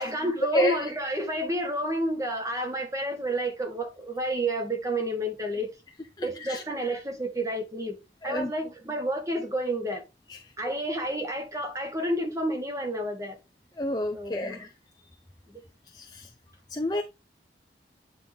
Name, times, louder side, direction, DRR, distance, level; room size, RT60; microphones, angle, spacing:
voice 1, 0.0-5.7 6.2-10.0 10.6-13.4 14.1-14.7 15.5-15.6, right 1 dB, 20° right, 1.7 m, -30 dB
voice 2, 6.2-6.6 8.2-8.5 10.3-10.4 13.8-14.7 15.9-16.3 16.7-17.0, equal, 20° left, 0.6 m, -29 dB
9.1 x 3.8 x 3.7 m
head